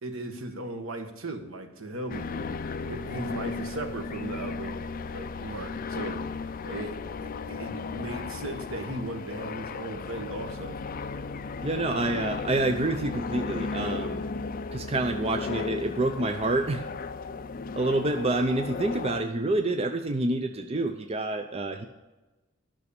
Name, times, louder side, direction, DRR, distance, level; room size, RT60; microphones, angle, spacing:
voice 1, 0.0-4.8 5.1-10.8, right 2 dB, 65° right, 5 dB, 1.4 m, -37 dB
sound 1, 2.1-19.2, left 4 dB, 40° left, 0.4 m, -35 dB
voice 2, 11.6-14.2 14.7-16.8 17.8-21.8, right 2 dB, 30° right, 6 dB, 0.5 m, -27 dB
11.0 x 6.2 x 6.8 m, 1.1 s
head